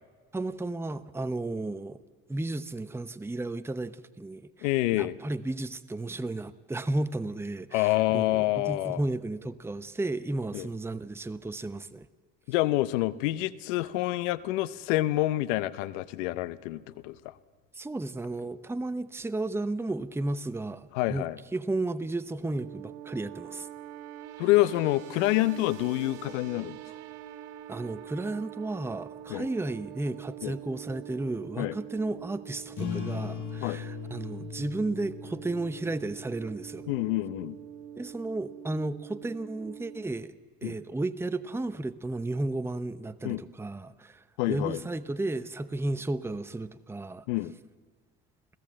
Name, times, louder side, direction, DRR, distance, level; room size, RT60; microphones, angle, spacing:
voice 1, 0.3-2.0 2.3-12.1 17.7-21.2 21.5-23.7 27.7-36.9 38.0-40.3 40.6-47.2, right 2 dB, 5° right, 0.8 m, -33 dB
voice 2, 4.6-5.1 7.7-9.0 10.5-10.7 12.5-17.3 20.9-21.4 24.4-26.8 29.3-29.5 30.4-30.6 31.6-31.8 33.6-33.8 36.9-37.6 40.6-40.7 43.2-43.4 44.4-44.8 47.3-47.5, left 17 dB, 80° left, 0.8 m, -27 dB
sound 1, 22.4-40.0, right 12 dB, 75° right, 1.5 m, -45 dB
sound 2, 32.7-37.8, left 9 dB, 55° left, 5.1 m, -40 dB
28.0 x 16.0 x 7.6 m
hypercardioid pair, 75°, 36 cm